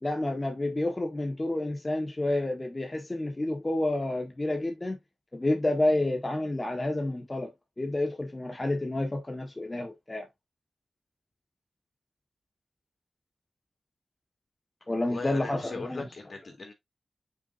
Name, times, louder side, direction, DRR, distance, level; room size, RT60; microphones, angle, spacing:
voice 1, 0.0-5.0 5.3-7.5 7.8-10.3 14.9-16.1, left 1 dB, 30° left, 1.6 m, -29 dB
voice 2, 15.1-16.7, left 3 dB, 60° left, 3.2 m, -39 dB
7.1 x 6.0 x 2.7 m
cardioid pair, 60°, 0 cm